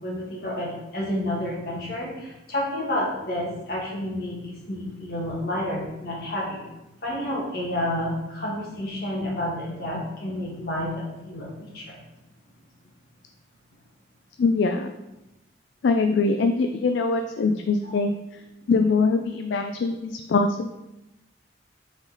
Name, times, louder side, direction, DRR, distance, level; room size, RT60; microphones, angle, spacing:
voice 1, 0.0-6.6 7.0-12.0 17.8-17.9, left 1 dB, 55° left, -3 dB, 1.7 m, -30 dB
voice 2, 14.4-14.9 15.8-18.4 18.7-20.7, left 4 dB, 70° left, 6 dB, 0.3 m, -23 dB
5.9 x 4.1 x 4.0 m, 0.96 s
head